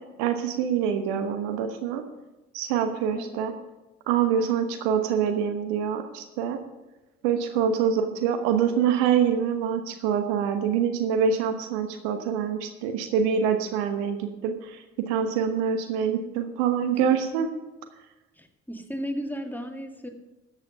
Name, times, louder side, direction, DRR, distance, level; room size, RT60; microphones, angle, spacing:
voice 1, 0.2-2.0 2.5-3.5 4.1-6.6 7.2-17.5, right 7 dB, 75° right, 8 dB, 1.2 m, -25 dB
voice 2, 3.1-3.4 7.8-7.9 18.4-20.1, equal, 5° left, 4 dB, 2.1 m, -35 dB
13.5 x 7.9 x 5.6 m, 1.1 s
hypercardioid pair, 50°, 32 cm